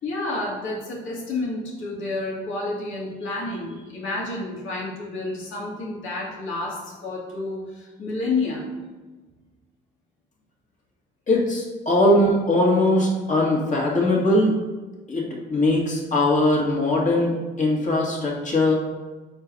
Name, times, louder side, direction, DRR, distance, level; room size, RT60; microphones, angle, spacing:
voice 1, 0.0-8.7, left 2 dB, 75° left, -3 dB, 2.1 m, -30 dB
voice 2, 11.3-14.5 15.1-15.2 15.5-17.3 17.6-18.7, left 1 dB, 40° left, -3 dB, 2.0 m, -20 dB
5.0 x 4.4 x 5.3 m, 1.3 s
cardioid pair, 90°, 20 cm